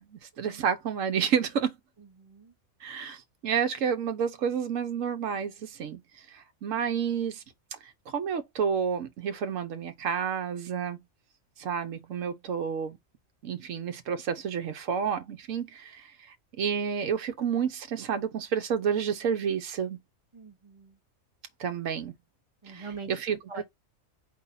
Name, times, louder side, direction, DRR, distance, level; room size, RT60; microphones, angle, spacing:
voice 1, 0.0-1.8 2.8-6.0 6.3-7.4 8.1-11.0 11.6-13.0 13.4-20.0 21.6-22.1 22.7-23.6, right 7 dB, 70° right, 1.2 m, -30 dB
voice 2, 2.0-2.5 20.3-21.0 22.6-23.6, right 5 dB, 25° right, 0.7 m, -44 dB
4.7 x 2.5 x 4.1 m
omnidirectional pair, 1.4 m